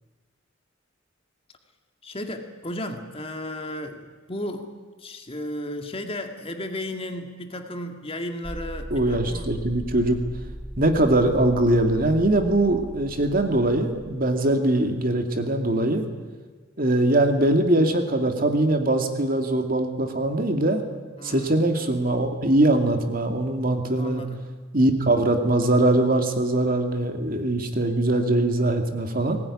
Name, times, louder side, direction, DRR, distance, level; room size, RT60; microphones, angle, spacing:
voice 1, 2.0-9.5 21.2-21.6 24.0-24.4, left 1 dB, 30° left, 5 dB, 2.0 m, -34 dB
sound 1, 8.4-14.6, right 1 dB, 10° right, 1.5 m, -38 dB
voice 2, 8.9-10.2 10.8-16.0 16.8-20.8 21.2-24.2 24.7-29.4, right 1 dB, 45° right, 5 dB, 2.4 m, -22 dB
21.0 x 19.0 x 10.0 m, 1.4 s
head